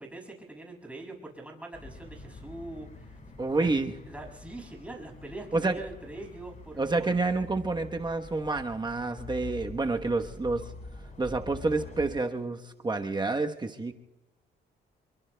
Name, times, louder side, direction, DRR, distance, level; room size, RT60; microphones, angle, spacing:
voice 1, 0.0-3.2 3.5-3.7 4.1-7.2, right 2 dB, 5° right, 0 dB, 6.6 m, -43 dB
sound 1, 1.7-12.1, left 4 dB, 40° left, 5.0 m, -46 dB
voice 2, 3.4-3.9 5.5-5.8 6.8-10.7 11.2-13.9, right 3 dB, 20° right, 4 dB, 1.1 m, -29 dB
27.5 x 23.0 x 2.3 m, 1.1 s
cardioid pair, 90°, 20 cm